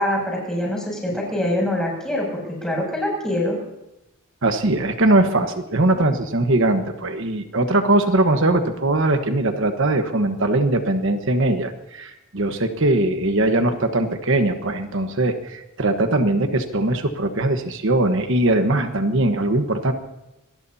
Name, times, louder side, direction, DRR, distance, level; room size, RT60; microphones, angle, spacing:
voice 1, 0.0-3.6, left 1 dB, 5° left, -2 dB, 7.1 m, -24 dB
voice 2, 4.4-19.9, right 2 dB, 60° right, 7 dB, 1.3 m, -20 dB
26.0 x 19.5 x 2.8 m, 0.92 s
head